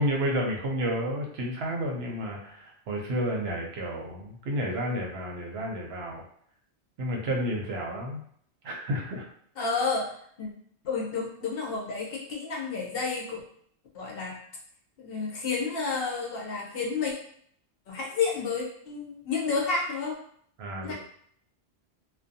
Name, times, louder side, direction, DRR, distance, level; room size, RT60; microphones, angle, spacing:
voice 1, 0.0-6.2 7.0-8.2 8.6-9.3 20.6-20.9, equal, 70° right, 0 dB, 0.8 m, -31 dB
voice 2, 9.6-10.5 10.8-13.4 13.9-14.4 15.0-17.1 17.9-20.1 20.8-20.9, left 4 dB, 60° left, -2 dB, 0.8 m, -30 dB
2.5 x 2.2 x 2.6 m, 0.63 s
omnidirectional pair, 1.2 m